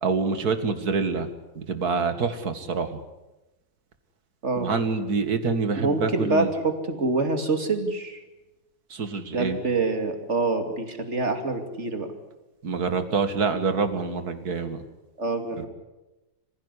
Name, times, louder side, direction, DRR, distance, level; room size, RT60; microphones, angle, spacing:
voice 1, 0.0-1.3 1.6-3.0 4.6-6.5 8.9-9.6 12.6-14.8, right 4 dB, 65° right, 9 dB, 2.4 m, -26 dB
voice 2, 5.8-8.2 9.3-12.1 15.2-15.7, right 3 dB, 40° right, 6 dB, 3.0 m, -26 dB
26.0 x 16.0 x 10.0 m, 1.0 s
omnidirectional pair, 1.8 m